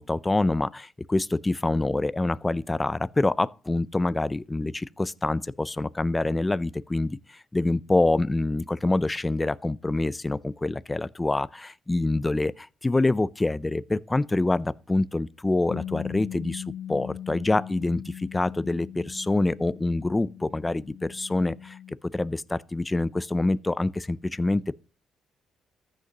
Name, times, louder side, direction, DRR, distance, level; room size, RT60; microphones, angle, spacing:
voice 1, 0.0-16.6 16.9-21.8 22.1-24.7, left 2 dB, 15° left, 0.4 m, -26 dB
Bass guitar, 15.7-22.0, left 10 dB, 85° left, 0.5 m, -40 dB
14.5 x 6.5 x 2.9 m
cardioid pair, 90°, 0 cm